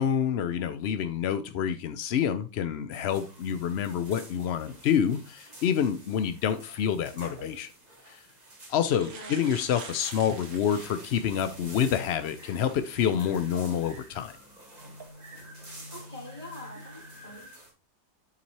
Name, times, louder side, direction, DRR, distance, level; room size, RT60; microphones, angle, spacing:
voice 1, 0.0-7.7 8.1-8.2 8.7-14.3, left 8 dB, 75° left, 0.6 m, -27 dB
sound 1, 2.9-17.7, equal, 25° right, 1.9 m, -48 dB
sound 2, 7.4-7.5 8.3-8.4 8.6-11.4 12.0-12.1 14.0-14.2 14.8-15.0, right 5 dB, 65° right, 1.6 m, -46 dB
voice 2, 9.1-9.5 15.9-17.7, left 1 dB, 25° left, 2.5 m, -45 dB
9.9 x 4.1 x 3.0 m
omnidirectional pair, 1.7 m